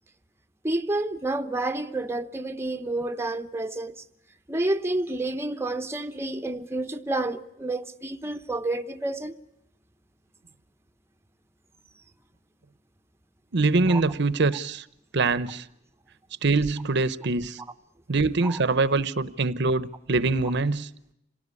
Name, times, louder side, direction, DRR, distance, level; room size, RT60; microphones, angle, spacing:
voice 1, 0.6-4.0 4.5-9.3 13.9-14.0 18.4-18.6, right 2 dB, 15° right, 0.9 m, -29 dB
voice 2, 13.5-14.8 15.1-15.6 16.4-17.6 18.1-20.9, right 3 dB, 60° right, 0.9 m, -24 dB
27.0 x 18.5 x 9.7 m
head